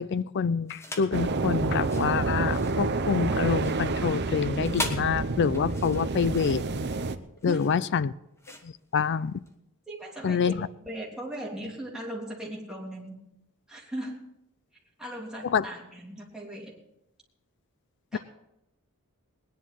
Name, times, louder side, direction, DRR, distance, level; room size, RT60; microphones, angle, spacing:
voice 1, 0.0-6.6 7.4-8.1 8.6-9.4 10.2-10.7 15.4-15.6, left 6 dB, 55° left, 0.4 m, -27 dB
sound 1, 0.7-1.2 1.7-9.6, left 1 dB, 10° left, 1.2 m, -40 dB
sound 2, 1.1-7.2, right 3 dB, 50° right, 0.7 m, -28 dB
voice 2, 9.9-10.5 10.8-13.2 13.7-14.3 15.0-16.7 18.1-18.2, right 1 dB, 5° right, 3.1 m, -38 dB
20.0 x 10.5 x 4.2 m
head